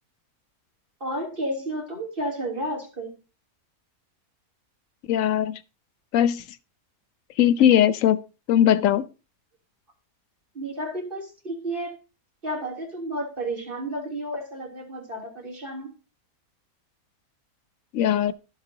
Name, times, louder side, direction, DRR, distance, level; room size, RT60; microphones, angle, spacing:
voice 1, 1.0-3.1 10.5-11.9 12.4-15.9, right 1 dB, 35° right, 3.3 m, -32 dB
voice 2, 5.1-5.6 6.1-6.4 7.4-8.2 8.5-9.1 17.9-18.3, left 10 dB, 65° left, 1.0 m, -19 dB
15.0 x 6.6 x 2.8 m
omnidirectional pair, 1.6 m